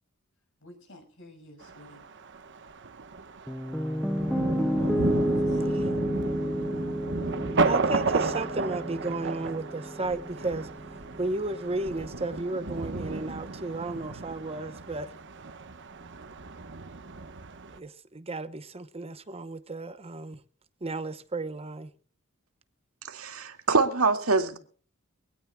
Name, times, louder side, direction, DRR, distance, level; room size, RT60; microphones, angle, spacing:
voice 1, 0.6-2.0 5.0-6.1, equal, 60° left, 5.7 m, -50 dB
Thunder, 1.6-17.8, right 3 dB, 55° right, 1.1 m, -33 dB
Piano, 3.5-11.6, equal, ahead, 0.6 m, -31 dB
voice 2, 7.6-10.7 11.2-15.1 17.7-20.4 20.8-21.9, right 2 dB, 30° right, 0.9 m, -33 dB
voice 3, 23.1-24.6, right 4 dB, 80° right, 2.2 m, -24 dB
23.5 x 17.5 x 2.3 m
head